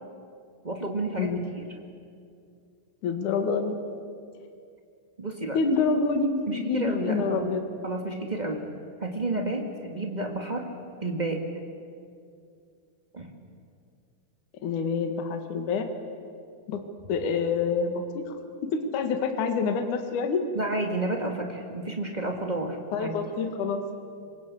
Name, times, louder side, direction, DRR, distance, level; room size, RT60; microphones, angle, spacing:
voice 1, 0.6-1.7 5.2-5.6 6.5-7.5 7.8-8.6 9.0-10.7 11.0-11.5 13.1-13.3 20.5-23.2, right 2 dB, 35° right, 2 dB, 0.7 m, -31 dB
voice 2, 3.0-3.8 5.5-7.6 14.6-15.9 16.7-16.8 17.1-18.4 18.6-20.5 22.9-23.8, left 5 dB, 55° left, 6 dB, 2.8 m, -27 dB
27.0 x 24.5 x 8.5 m, 2.3 s
omnidirectional pair, 4.9 m